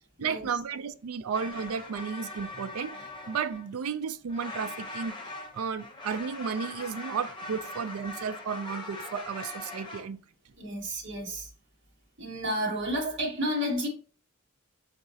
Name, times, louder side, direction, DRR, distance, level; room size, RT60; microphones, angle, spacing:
voice 1, 0.2-2.9 3.3-5.1 5.5-10.2, right 6 dB, 75° right, 0.4 m, -33 dB
sound 1, 1.3-4.0 4.3-10.0, left 2 dB, 20° left, 0.7 m, -41 dB
voice 2, 10.6-11.5 12.2-13.9, equal, 55° right, 1.3 m, -31 dB
4.6 x 3.9 x 2.7 m
head